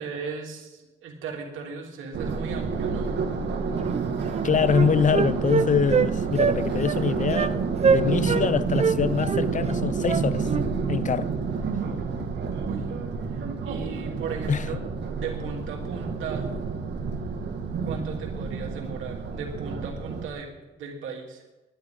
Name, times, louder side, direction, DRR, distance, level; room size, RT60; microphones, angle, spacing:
voice 1, 0.0-3.1 12.6-12.9 13.3-14.8 15.1-16.5 17.8-20.5 20.8-21.4, right 5 dB, 85° right, 3.1 m, -36 dB
sound 1, 2.1-20.3, right 5 dB, 60° right, 2.0 m, -29 dB
Wind instrument woodwind instrument, 3.9-4.0 4.3-6.1 6.4-6.6 6.8-7.0 7.3-7.5 7.8-8.5 8.8-10.7, right 6 dB, 35° right, 0.6 m, -24 dB
voice 2, 4.4-10.5 10.9-11.3 14.5-14.7, left 6 dB, 40° left, 0.6 m, -24 dB
21.0 x 11.5 x 3.8 m
cardioid pair, 90°, 20 cm